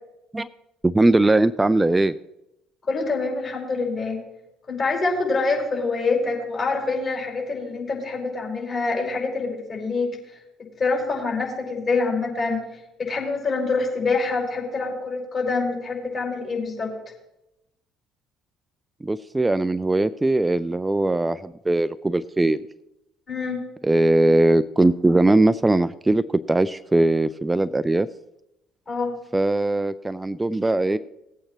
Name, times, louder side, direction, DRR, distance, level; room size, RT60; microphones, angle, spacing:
voice 1, 0.8-2.1 19.0-22.6 23.8-28.1 29.3-31.0, right 2 dB, 15° right, 13 dB, 0.3 m, -20 dB
voice 2, 2.8-4.2 4.7-10.2 10.8-12.6 13.0-16.9 23.3-23.7 28.9-29.2, left 3 dB, 40° left, -2 dB, 5.2 m, -25 dB
18.5 x 8.6 x 3.1 m, 0.89 s
figure-of-eight pair, 55°, 0 cm